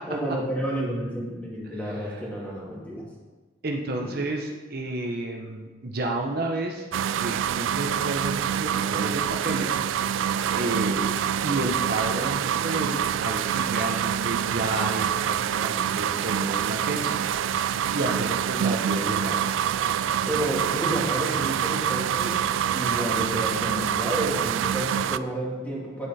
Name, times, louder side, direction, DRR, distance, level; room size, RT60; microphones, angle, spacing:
voice 1, 0.1-3.0 4.0-4.2 20.3-26.1, right 1 dB, 10° left, -6 dB, 2.4 m, -30 dB
voice 2, 1.9-2.2 3.6-9.7 10.5-17.2 17.9-19.4, right 2 dB, 55° right, 1 dB, 0.9 m, -31 dB
sound 1, 6.9-25.2, right 9 dB, 90° right, 0.3 m, -26 dB
9.6 x 8.0 x 4.3 m, 1.3 s
head